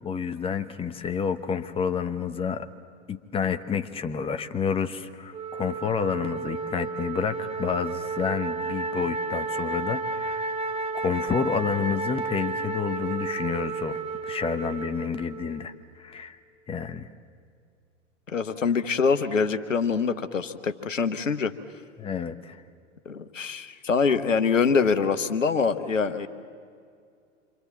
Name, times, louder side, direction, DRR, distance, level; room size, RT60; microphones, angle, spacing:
voice 1, 0.0-2.7 3.1-10.5 10.9-14.0 14.3-16.4 16.7-17.1 22.0-22.6, left 6 dB, 15° left, 10 dB, 1.0 m, -29 dB
Wind instrument woodwind instrument, 5.3-15.7, right 3 dB, 15° right, 2.1 m, -32 dB
voice 2, 18.3-21.5 23.0-26.3, left 5 dB, 80° left, 10 dB, 1.3 m, -24 dB
27.0 x 26.0 x 7.4 m, 2.3 s
figure-of-eight pair, 90°, 38 cm